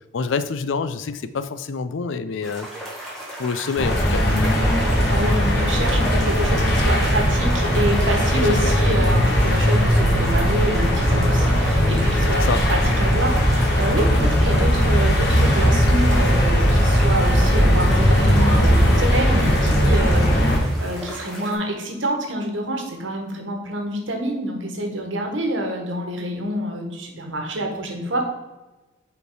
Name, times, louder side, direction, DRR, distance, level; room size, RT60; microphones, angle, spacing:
voice 1, 0.1-2.7 3.4-4.5 8.3-8.8 12.4-12.6, left 4 dB, 80° left, 12 dB, 0.4 m, -27 dB
sound 1, 2.4-21.5, right 1 dB, ahead, 1.4 m, -36 dB
sound 2, 3.8-20.6, equal, 55° left, 1.5 m, -18 dB
voice 2, 5.1-28.2, right 1 dB, 80° right, 2 dB, 1.3 m, -27 dB
5.3 x 4.6 x 4.7 m, 1.1 s
head